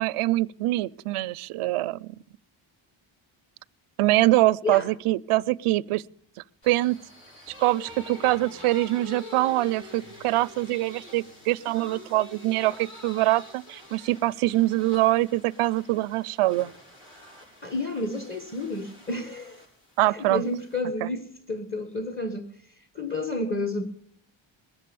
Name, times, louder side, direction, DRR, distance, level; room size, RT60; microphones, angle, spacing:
voice 1, 0.0-2.2 4.0-6.0 6.6-7.0 7.6-16.7 20.0-20.4 21.0-21.1, right 17 dB, 85° right, 0.6 m, -24 dB
sound 1, 6.6-20.8, left 1 dB, 75° left, 7.2 m, -46 dB
voice 2, 17.6-19.6 20.1-22.5 22.9-23.9, left 2 dB, 25° left, 1.4 m, -30 dB
21.0 x 7.6 x 7.0 m
cardioid pair, 90°, 50 cm